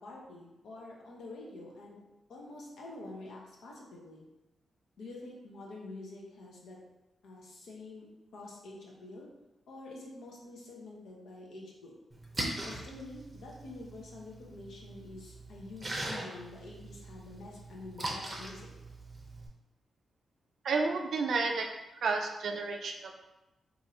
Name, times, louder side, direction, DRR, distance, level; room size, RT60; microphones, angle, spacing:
voice 1, 0.0-2.0 2.3-4.2 5.0-6.8 7.2-8.1 8.3-9.3 9.7-11.9 12.6-18.7, left 2 dB, 85° left, -2 dB, 0.8 m, -47 dB
Splash splatter, 12.1-19.5, right 1 dB, 20° right, 0.6 m, -41 dB
voice 2, 20.6-21.7 22.0-23.1, right 4 dB, 65° right, 3 dB, 0.4 m, -31 dB
2.7 x 2.5 x 4.2 m, 0.99 s
wide cardioid pair, 120°, 0 cm